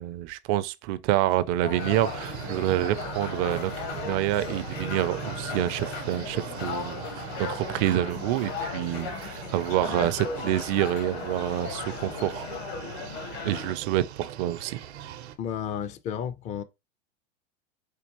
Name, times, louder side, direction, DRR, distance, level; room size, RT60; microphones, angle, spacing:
voice 1, 0.0-12.5 13.4-14.8, right 14 dB, 40° right, 0.4 m, -27 dB
sound 1, 1.6-13.7, left 5 dB, 65° left, 1.2 m, -36 dB
sound 2, 1.8-15.3, right 11 dB, 80° right, 0.7 m, -41 dB
voice 2, 15.4-16.6, left 8 dB, 25° left, 0.3 m, -32 dB
4.5 x 2.4 x 2.9 m
hypercardioid pair, 110°, 33 cm